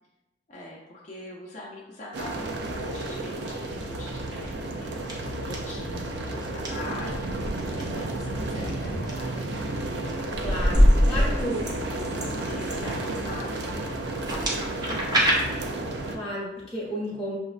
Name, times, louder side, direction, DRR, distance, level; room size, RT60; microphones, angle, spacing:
voice 1, 0.5-10.0 11.1-13.9 14.5-16.2, left 1 dB, 40° left, -4 dB, 0.5 m, -42 dB
sound 1, 2.1-16.2, right 2 dB, 70° right, 0.4 m, -32 dB
sound 2, 4.4-4.7 5.1-5.6 6.4-6.7 7.6-7.8 8.6-9.1 9.6-10.1 10.7-13.4 14.1-15.3, right 1 dB, 25° right, 0.6 m, -31 dB
sound 3, 7.4-7.7 8.1-8.2 8.9-9.2 9.8-11.5, equal, 50° right, 0.8 m, -21 dB
voice 2, 10.4-11.6 16.1-17.4, equal, 5° left, -8 dB, 1.0 m, -32 dB
5.8 x 2.1 x 2.4 m, 1.0 s
head